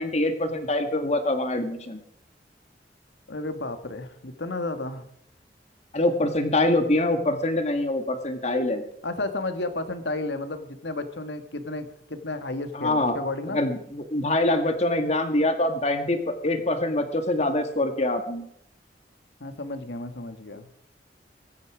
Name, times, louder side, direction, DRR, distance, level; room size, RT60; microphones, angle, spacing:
voice 1, 0.0-2.0 5.9-8.8 12.7-13.1 13.5-18.5, left 1 dB, 40° left, 7 dB, 1.9 m, -24 dB
voice 2, 3.3-5.1 9.0-13.6 19.4-20.7, left 2 dB, 80° left, 8 dB, 1.7 m, -32 dB
23.0 x 9.5 x 5.0 m, 0.72 s
head